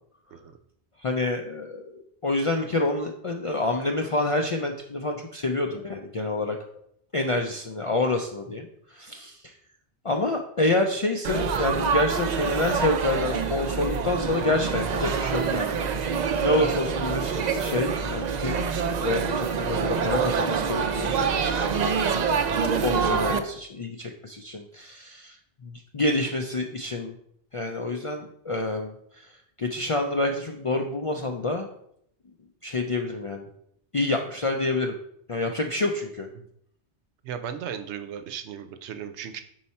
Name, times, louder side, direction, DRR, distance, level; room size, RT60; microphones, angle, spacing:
voice 1, 1.0-6.6 7.1-9.5 10.0-16.0 16.4-21.7 22.8-25.4 25.6-27.1 27.5-29.3 29.6-31.7 32.6-33.5 33.9-34.9 35.3-36.3, left 2 dB, 50° left, 3 dB, 0.3 m, -28 dB
Laughter / Chatter / Crowd, 11.2-23.4, right 6 dB, 55° right, 0.5 m, -26 dB
voice 2, 37.2-39.4, right 8 dB, 80° right, 9 dB, 0.9 m, -36 dB
5.5 x 4.6 x 4.2 m, 0.70 s
omnidirectional pair, 1.1 m